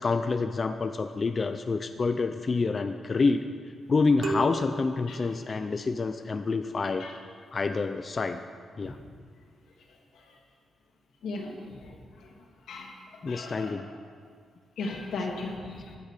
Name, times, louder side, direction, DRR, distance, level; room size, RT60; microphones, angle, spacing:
voice 1, 0.0-3.5 3.9-7.0 7.5-8.4 8.8-9.0 13.2-13.9, left 4 dB, 30° left, 8 dB, 0.4 m, -27 dB
sound 1, 4.2-6.1, right 3 dB, 60° right, 1.1 m, -38 dB
voice 2, 11.2-12.0 12.7-12.9 13.3-13.7 14.8-15.9, left 3 dB, 85° left, -1 dB, 2.6 m, -36 dB
15.0 x 11.0 x 5.0 m, 2.1 s
wide cardioid pair, 175°, 0 cm